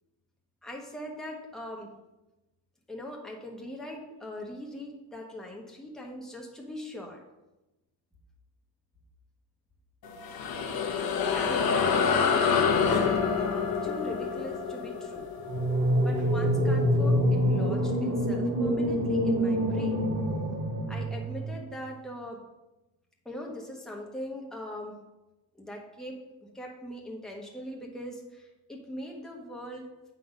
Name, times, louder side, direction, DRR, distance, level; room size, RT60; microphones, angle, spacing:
voice 1, 0.6-1.9 2.9-7.2 11.3-15.3 16.0-20.0 20.9-22.4 23.2-25.0 25.6-30.1, left 1 dB, ahead, -1 dB, 1.3 m, -41 dB
sound 1, 10.0-16.9, left 6 dB, 55° left, 1.0 m, -27 dB
sound 2, 15.5-21.6, equal, 45° right, 2.6 m, -26 dB
7.5 x 4.2 x 5.2 m, 1.0 s
cardioid pair, 115°, 44 cm